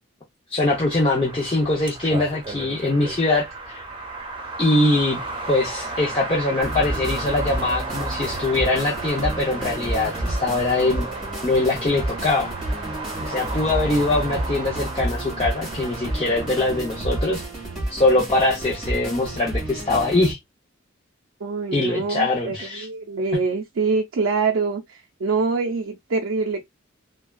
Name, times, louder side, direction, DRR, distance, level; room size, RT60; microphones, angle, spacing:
voice 1, 0.5-3.8 4.6-5.2 5.5-11.1 11.4-12.5 13.2-17.4 17.9-20.4 21.7-22.9, left 2 dB, 25° left, 0.6 m, -22 dB
sound 1, 0.6-17.5, right 2 dB, 25° right, 0.9 m, -34 dB
sound 2, 6.6-20.3, right 1 dB, ahead, 2.0 m, -30 dB
voice 2, 21.4-26.6, right 4 dB, 80° right, 0.5 m, -25 dB
3.2 x 2.3 x 2.3 m
head